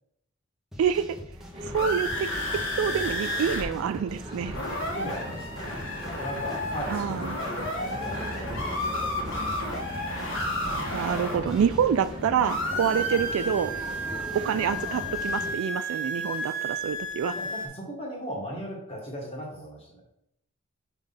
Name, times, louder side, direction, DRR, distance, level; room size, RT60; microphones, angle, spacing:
sound 1, 0.7-15.5, equal, ahead, 1.0 m, -44 dB
voice 1, 0.8-1.2 1.6-2.3 2.8-4.5 6.9-7.4 10.9-13.7 14.4-17.4, right 7 dB, 85° right, 11 dB, 0.3 m, -27 dB
sound 2, 1.4-3.6 3.9-4.0 4.3-12.1 12.4-17.7, equal, 65° left, 1.5 m, -32 dB
sound 3, 1.5-15.5, equal, 25° right, 1.1 m, -39 dB
voice 2, 4.9-9.1 9.4-9.5 17.3-20.0, equal, 30° left, -2 dB, 1.7 m, -38 dB
5.2 x 3.6 x 5.7 m, 0.77 s
head